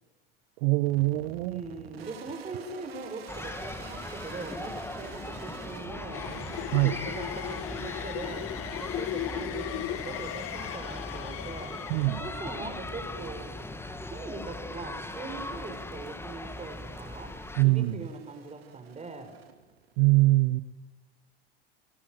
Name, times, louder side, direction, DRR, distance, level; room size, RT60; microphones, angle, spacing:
voice 1, 0.6-1.6 6.7-7.0 11.9-12.2 17.6-18.0 20.0-20.6, right 20 dB, 60° right, 15 dB, 1.0 m, -23 dB
sound 1, 0.8-20.0, right 7 dB, 80° right, 3.2 m, -50 dB
voice 2, 1.5-6.3 7.0-11.8 12.2-17.4 17.6-19.4, right 3 dB, 20° right, 6 dB, 5.3 m, -41 dB
sound 2, 3.3-17.6, left 2 dB, 10° left, 2.3 m, -39 dB
sound 3, 6.1-13.4, left 11 dB, 50° left, 2.3 m, -37 dB
29.5 x 20.0 x 9.2 m, 1.0 s
hypercardioid pair, 80°, 30 cm